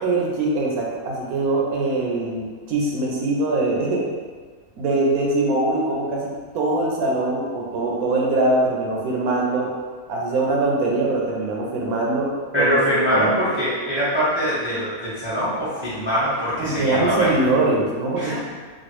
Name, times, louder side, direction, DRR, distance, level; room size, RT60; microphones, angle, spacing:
voice 1, 0.0-4.0 4.8-9.7 10.1-12.7 13.1-13.4 16.6-18.3, right 2 dB, 80° right, -2 dB, 1.1 m, -22 dB
voice 2, 12.5-17.4 18.2-18.3, equal, 10° right, -11 dB, 0.6 m, -23 dB
3.1 x 2.3 x 3.0 m, 1.5 s
omnidirectional pair, 1.6 m